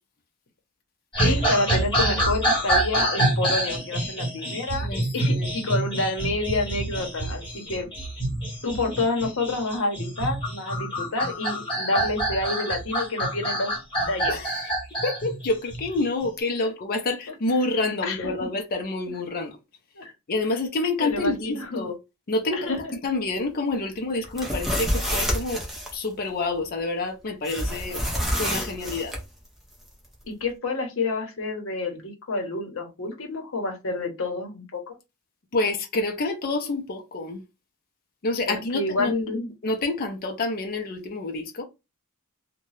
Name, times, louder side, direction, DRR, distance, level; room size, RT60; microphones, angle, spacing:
sound 1, 1.1-16.3, right 1 dB, 25° left, 1.3 m, -27 dB
voice 1, 1.2-4.9 5.1-7.9 8.6-14.4 16.6-16.7 17.3-17.7 18.0-18.5 20.0-20.1 21.0-21.8 22.5-22.9 30.2-34.9 38.5-39.5, left 2 dB, 65° left, 0.8 m, -29 dB
voice 2, 4.8-5.5 14.3-14.4 15.0-19.5 20.3-22.0 22.3-25.6 25.9-28.0 28.4-29.1 35.5-37.4 38.2-39.1 39.6-41.6, left 2 dB, 45° left, 0.5 m, -28 dB
sound 2, 24.2-25.9 27.4-29.2, equal, ahead, 0.7 m, -28 dB
2.7 x 2.2 x 3.1 m
head